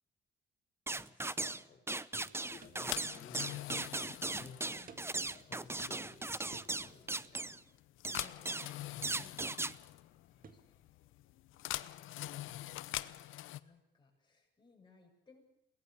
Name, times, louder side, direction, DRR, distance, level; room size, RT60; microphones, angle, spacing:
voice 1, 0.9-1.8 2.1-4.9 5.3-7.5 9.2-9.4 10.0-10.4, left 5 dB, 40° left, 2 dB, 4.0 m, -57 dB
sound 1, 0.9-1.6 1.9-7.6 8.0-8.7 9.0-9.7, right 2 dB, 10° right, 0.7 m, -38 dB
sound 2, 2.2-2.3 2.6-2.8 3.2-3.3 3.7-3.8 4.3-4.4 4.9-5.1 5.5-5.8 6.5-6.8 8.0-8.3 9.4-9.6 10.4-10.7, right 5 dB, 45° right, 1.8 m, -55 dB
sound 3, 2.5-13.6, left 15 dB, 90° left, 0.8 m, -45 dB
voice 2, 8.1-9.2 10.4-10.6 11.0-11.1 13.0-15.4, left 3 dB, 25° left, -1 dB, 7.6 m, -63 dB
22.5 x 18.5 x 6.9 m, 0.86 s
cardioid pair, 90°, 20 cm